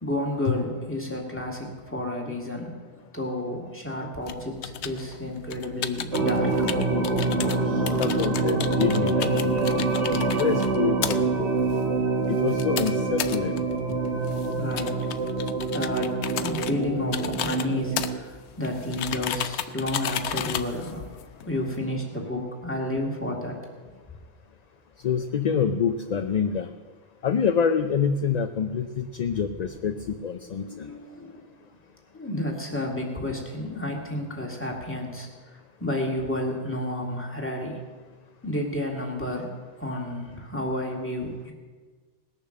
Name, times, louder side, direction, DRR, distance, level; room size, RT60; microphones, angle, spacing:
voice 1, 0.0-2.7 3.1-6.5 14.5-15.1 15.7-21.0 21.4-23.6 30.6-31.4 32.1-35.3 35.8-37.8 38.4-39.5 39.8-41.5, left 1 dB, 10° left, -1 dB, 2.2 m, -31 dB
sound 1, 4.2-21.8, left 9 dB, 85° left, 0.9 m, -35 dB
sound 2, 6.1-18.2, right 3 dB, 85° right, 1.7 m, -26 dB
voice 2, 7.7-9.7 10.1-11.5 12.3-13.6 25.0-26.7 27.2-30.9, left 7 dB, 50° left, 8 dB, 0.5 m, -26 dB
19.0 x 6.9 x 6.5 m, 1.5 s
omnidirectional pair, 1.1 m